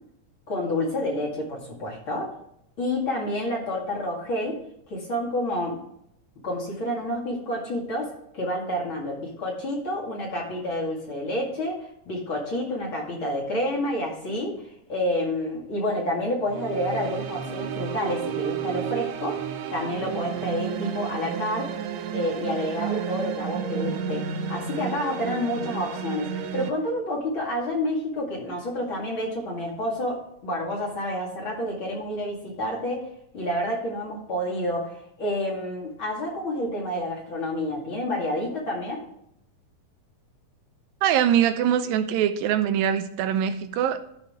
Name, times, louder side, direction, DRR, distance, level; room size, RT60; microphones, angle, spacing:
voice 1, 0.5-2.4 2.8-4.6 4.9-5.8 6.4-14.5 14.9-19.4 19.7-21.7 22.1-33.1 33.3-39.0, left 1 dB, 40° left, -2 dB, 2.5 m, -29 dB
sound 1, 16.4-26.7, right 8 dB, 75° right, 1.6 m, -32 dB
voice 2, 41.0-44.0, right 9 dB, 90° right, 10 dB, 2.5 m, -23 dB
13.5 x 5.8 x 3.7 m, 0.75 s
omnidirectional pair, 4.1 m